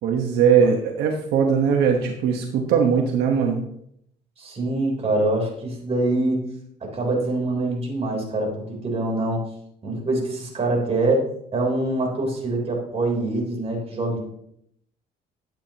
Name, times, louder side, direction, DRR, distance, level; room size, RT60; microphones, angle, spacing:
voice 1, 0.0-3.6, right 7 dB, 80° right, 2 dB, 1.2 m, -20 dB
voice 2, 4.4-6.4 6.8-9.5 9.8-14.2, right 2 dB, 40° right, 0 dB, 3.7 m, -24 dB
12.0 x 8.6 x 2.9 m, 0.71 s
cardioid pair, 110°, 17 cm